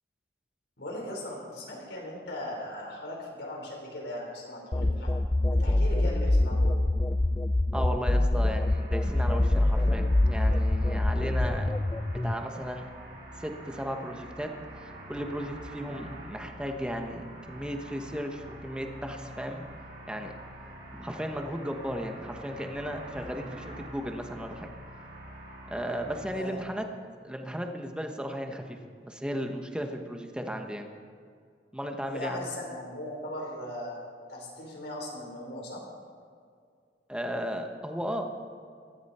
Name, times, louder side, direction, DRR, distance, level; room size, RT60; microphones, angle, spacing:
voice 1, 0.8-5.1 5.5-6.7 26.3-26.6 32.1-34.0 34.3-35.8, left 1 dB, 80° left, -1 dB, 4.6 m, -38 dB
sound 1, 4.7-12.3, left 1 dB, 15° left, 0.3 m, -25 dB
voice 2, 7.7-11.7 12.2-12.9 13.4-19.6 20.1-20.3 20.9-24.7 25.7-26.8 27.2-28.8 29.0-30.9 31.7-32.4 37.1-38.3, equal, 5° right, 4 dB, 1.2 m, -35 dB
sound 2, 8.6-26.4, right 1 dB, 65° right, 3.8 m, -46 dB
17.0 x 13.5 x 4.4 m, 2.2 s
head